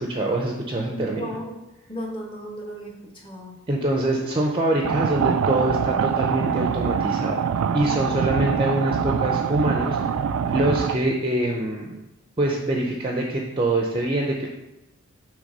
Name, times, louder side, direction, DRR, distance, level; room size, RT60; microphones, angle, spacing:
voice 1, 0.0-1.4 3.7-10.0 10.5-12.0 12.4-14.5, right 1 dB, 25° right, 0 dB, 0.5 m, -24 dB
voice 2, 0.8-1.6 1.9-3.6 7.9-8.3, equal, 25° left, 0 dB, 1.1 m, -35 dB
sound 1, 4.8-11.0, right 7 dB, 85° right, 0.4 m, -24 dB
6.3 x 3.5 x 5.3 m, 0.93 s
head